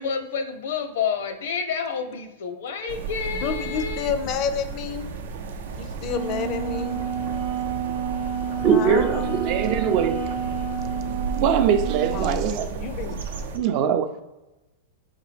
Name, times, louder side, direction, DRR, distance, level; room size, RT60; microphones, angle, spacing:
voice 1, 0.0-4.1, left 6 dB, 75° left, 0.7 m, -29 dB
sound 1, 2.9-13.6, right 4 dB, 85° right, 0.6 m, -33 dB
voice 2, 3.3-5.1 5.8-7.0 8.6-9.3 12.1-13.3, left 7 dB, 35° left, 0.4 m, -30 dB
Wind instrument woodwind instrument, 6.0-12.3, right 7 dB, 55° right, 0.8 m, -30 dB
voice 3, 8.6-10.4 11.3-12.7 13.5-14.2, right 7 dB, 40° right, 0.4 m, -22 dB
4.3 x 3.6 x 3.3 m
supercardioid pair, 150°, 0 cm